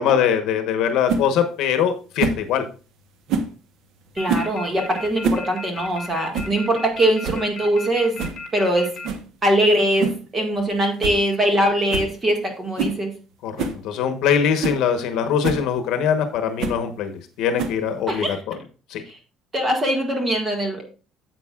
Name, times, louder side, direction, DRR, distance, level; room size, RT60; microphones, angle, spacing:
voice 1, 0.0-2.6 13.4-18.6 18.9-19.0, left 8 dB, 65° left, 7 dB, 1.0 m, -22 dB
sound 1, 1.1-1.3 2.2-2.5 3.3-3.6 4.3-4.6 5.1-5.5 5.8-5.9 6.3-6.6 6.9-7.0 7.2-7.5 8.2-8.4 9.0-9.3 10.0-10.3 10.6-10.7 11.0-11.2 11.5-11.6 11.9-12.1 12.8-13.0 13.6-13.8 14.3-14.4 14.6-14.8 15.4-15.7 16.6-16.8 17.6-17.9, right 4 dB, 60° right, 1.1 m, -25 dB
voice 2, 4.1-8.1 8.5-8.9 9.4-13.1 18.1-18.4 19.1-19.2 19.5-20.8, right 1 dB, 20° right, 3 dB, 1.8 m, -21 dB
sound 2, 4.2-9.1, left 5 dB, 35° left, 2.2 m, -35 dB
10.0 x 7.8 x 2.4 m, 0.36 s
cardioid pair, 160°, 0 cm